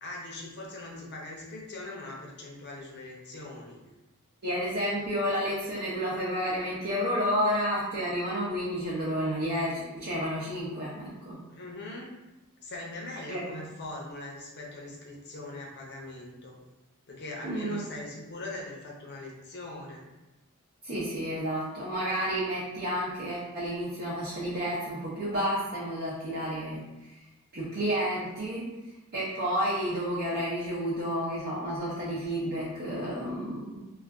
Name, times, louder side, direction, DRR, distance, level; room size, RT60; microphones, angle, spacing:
voice 1, 0.0-3.8 11.5-12.2 12.6-16.6 17.1-20.0, left 2 dB, 50° left, -2 dB, 0.7 m, -41 dB
voice 2, 4.4-11.4 13.3-13.4 17.4-17.8 20.8-26.8 27.1-27.2 27.5-28.8 29.1-33.9, equal, 50° right, -8 dB, 0.6 m, -31 dB
2.4 x 2.3 x 3.4 m, 1.0 s
head